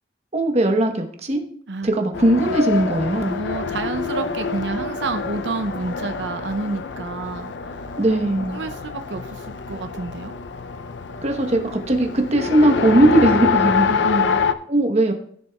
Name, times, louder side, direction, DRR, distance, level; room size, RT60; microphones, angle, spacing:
voice 1, 0.3-1.4 1.8-3.4 8.0-8.6 11.2-13.9 14.7-15.1, right 1 dB, 40° right, 4 dB, 1.0 m, -19 dB
Race car auto racing, 2.1-14.5, left 5 dB, 85° left, 0.5 m, -26 dB
voice 2, 3.3-7.9 8.5-10.3 13.9-14.4, right 3 dB, 90° right, 8 dB, 0.6 m, -29 dB
15.0 x 6.9 x 2.3 m, 0.62 s
head